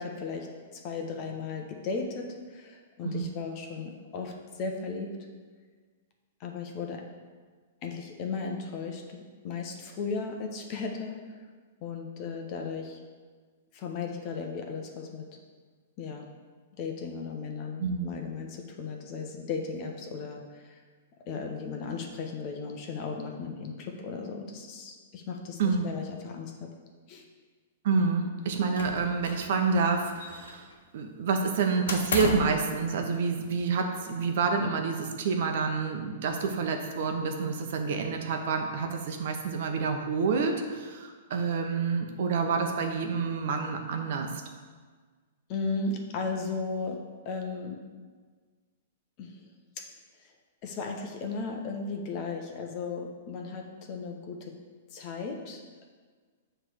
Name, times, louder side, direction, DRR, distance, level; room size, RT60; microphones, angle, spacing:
voice 1, 0.0-5.2 6.4-7.1 7.8-11.2 11.8-13.0 13.7-15.3 16.0-16.3 16.8-20.8 21.3-26.7 27.1-27.2 45.5-47.8 49.2-49.4 49.8-49.9 50.6-54.6 54.9-55.8, left 4 dB, 35° left, 3 dB, 0.9 m, -36 dB
voice 2, 27.8-30.7 30.9-44.4, right 5 dB, 60° right, 4 dB, 0.9 m, -28 dB
sound 1, 28.8-29.5 29.8-30.7 31.9-32.6, left 3 dB, 80° left, 1.0 m, -33 dB
7.3 x 3.4 x 6.2 m, 1.5 s
hypercardioid pair, 150°, 0 cm